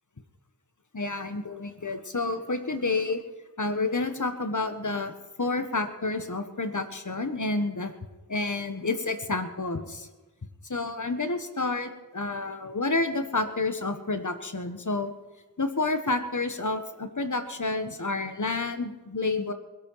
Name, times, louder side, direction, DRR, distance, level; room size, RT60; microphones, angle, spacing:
voice 1, 0.9-3.2 3.6-5.1 5.4-7.9 8.3-10.1 10.7-15.1 15.6-19.5, left 3 dB, 50° left, 8 dB, 1.5 m, -29 dB
21.0 x 8.7 x 5.7 m, 1.2 s
wide cardioid pair, 40°, 37 cm